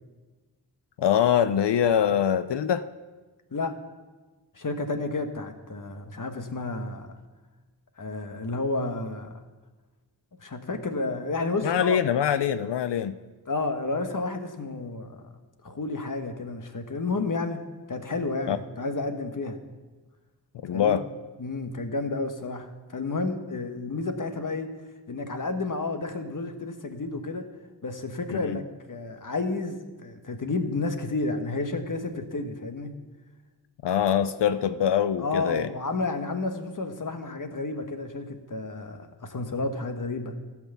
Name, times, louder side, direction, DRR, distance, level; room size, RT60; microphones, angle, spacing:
voice 1, 1.0-2.9 11.6-13.1 18.5-18.6 20.6-21.0 28.3-28.6 33.8-35.7, left 9 dB, 75° left, 12 dB, 0.6 m, -24 dB
voice 2, 4.5-7.1 8.0-9.4 10.4-12.0 13.5-15.2 15.6-19.6 20.7-21.0 21.4-24.7 25.1-27.5 27.8-33.0 35.2-40.3, left 3 dB, 45° left, 6 dB, 1.3 m, -31 dB
15.0 x 6.1 x 6.8 m, 1.3 s
cardioid pair, 60°, 42 cm